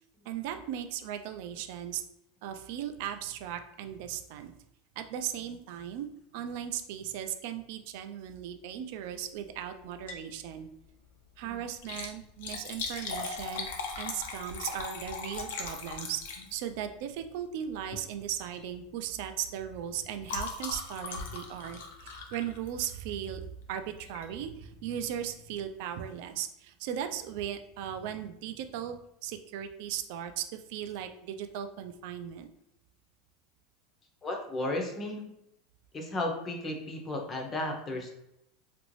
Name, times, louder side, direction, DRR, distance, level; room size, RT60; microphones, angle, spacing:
voice 1, 0.3-2.0 2.4-4.5 5.0-6.1 6.3-10.7 11.4-13.7 14.0-16.2 16.5-32.5, right 10 dB, 60° right, 8 dB, 0.3 m, -37 dB
Liquid, 9.9-10.3 10.7-10.8 11.7-16.8 17.8-18.1 18.4-18.7 19.0-23.1 24.0-24.3 24.8-24.9 25.1-25.2, left 4 dB, 80° left, 0.6 m, -39 dB
voice 2, 34.2-35.2 35.9-38.1, left 1 dB, 20° left, 2 dB, 0.5 m, -34 dB
3.0 x 2.5 x 3.0 m, 0.80 s
supercardioid pair, 165°, 0 cm